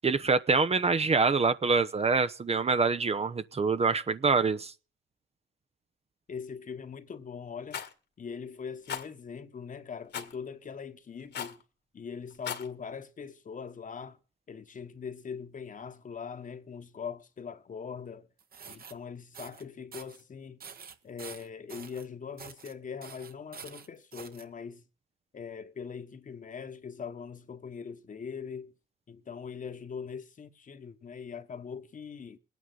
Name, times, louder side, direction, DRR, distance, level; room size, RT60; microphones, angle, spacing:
voice 1, 0.0-4.7, right 4 dB, 30° right, 0.9 m, -25 dB
voice 2, 6.3-7.8 8.2-11.6 11.9-14.2 14.5-18.3 18.7-20.6 21.0-24.8 25.3-28.7 29.1-32.4, left 6 dB, 40° left, 1.4 m, -41 dB
Rattle, 7.7-7.9 8.9-9.1 10.1-10.3 11.3-11.6 12.3-12.7, left 8 dB, 60° left, 1.9 m, -36 dB
sound 1, 18.4-18.9 19.3-19.6 19.9-20.2 20.6-22.1 22.4-22.7 23.0-24.4, right 6 dB, 50° right, 1.5 m, -47 dB
21.0 x 9.4 x 4.0 m
cardioid pair, 90°, 20 cm